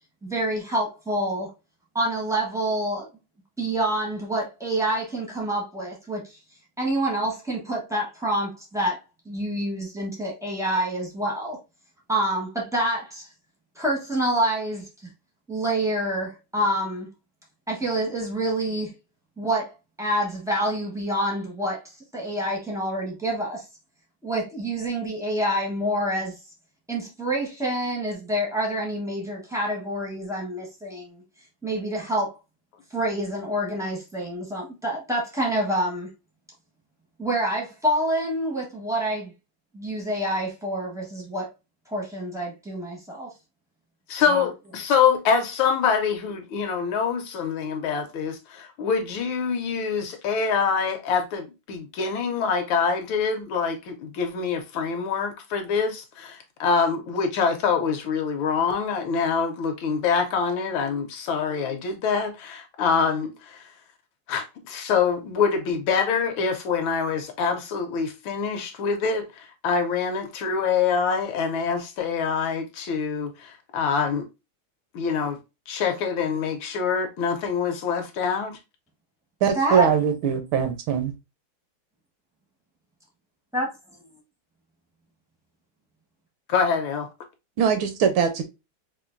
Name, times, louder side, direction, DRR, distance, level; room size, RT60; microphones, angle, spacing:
voice 1, 0.2-1.5 1.9-3.1 3.6-6.4 6.8-11.6 12.1-13.3 13.7-14.9 15.5-17.1 17.7-18.9 19.4-19.7 20.0-21.8 22.1-23.6 24.2-26.4 26.9-31.2 31.6-32.3 32.9-36.1 37.2-39.3 39.7-41.5 41.9-43.3 44.3-44.5 79.6-79.9 83.5-83.7, right 1 dB, 5° right, 0.5 m, -27 dB
voice 2, 44.1-63.6 64.3-74.3 74.9-75.4 75.7-78.6 86.5-87.1, left 6 dB, 70° left, 1.3 m, -25 dB
voice 3, 79.4-81.1 87.6-88.4, right 7 dB, 75° right, 1.4 m, -22 dB
5.0 x 2.6 x 2.5 m
omnidirectional pair, 2.4 m